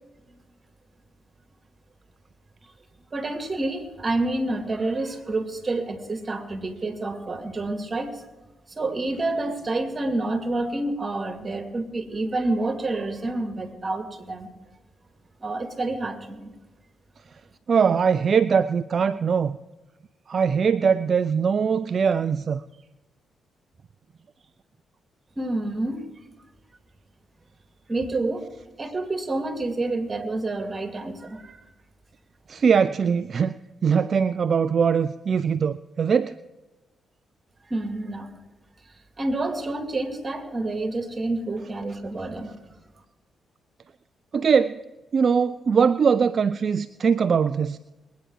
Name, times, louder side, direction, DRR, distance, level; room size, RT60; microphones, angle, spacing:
voice 1, 3.1-8.2 8.7-14.5 15.4-16.5 25.4-26.1 27.9-28.5 28.8-31.6 37.7-38.3 39.2-42.5, right 2 dB, 35° right, 5 dB, 2.5 m, -28 dB
voice 2, 17.7-19.6 20.3-22.6 32.5-33.5 33.8-36.3 44.3-44.8 45.1-47.8, right 6 dB, 55° right, 15 dB, 0.3 m, -21 dB
20.5 x 9.2 x 4.8 m, 1.1 s
hypercardioid pair, 40°, 0 cm